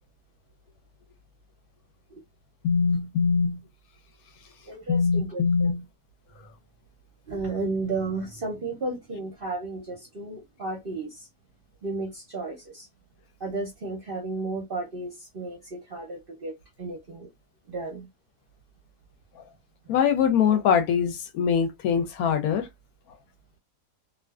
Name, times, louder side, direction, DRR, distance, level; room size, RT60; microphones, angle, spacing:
voice 1, 2.6-3.6 4.9-5.8 19.9-22.7, left 6 dB, 70° left, 1.0 m, -23 dB
voice 2, 4.7-5.7 7.3-11.3 11.8-12.9 13.4-16.5 16.8-17.3 17.7-18.1, right 3 dB, 50° right, 0.7 m, -33 dB
2.4 x 2.4 x 2.3 m
omnidirectional pair, 1.7 m